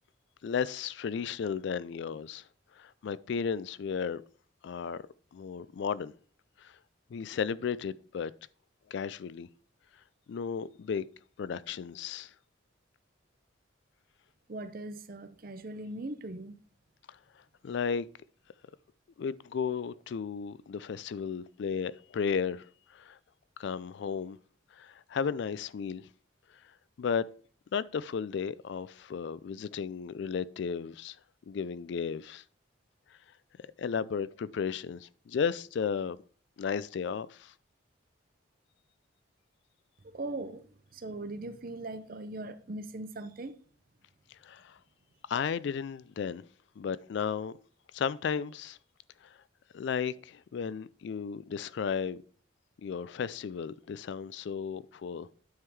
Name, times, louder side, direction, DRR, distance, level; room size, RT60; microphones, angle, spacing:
voice 1, 0.4-2.4 2.8-4.2 4.6-5.0 5.3-6.1 6.6-6.7 7.1-8.3 8.9-9.5 10.3-11.0 11.4-12.3 17.1-17.2 17.6-18.1 19.2-22.7 22.9-23.2 23.6-24.4 24.7-26.1 27.0-27.3 27.7-31.2 31.5-32.4 33.8-36.2 36.6-37.5 44.3-44.8 45.3-46.4 46.8-47.5 47.9-48.8 49.2-49.4 49.7-52.2 52.8-55.3, left 6 dB, 60° left, 0.3 m, -34 dB
voice 2, 14.5-16.6 40.0-43.6, right 2 dB, 45° right, 0.6 m, -40 dB
9.5 x 3.7 x 4.6 m
head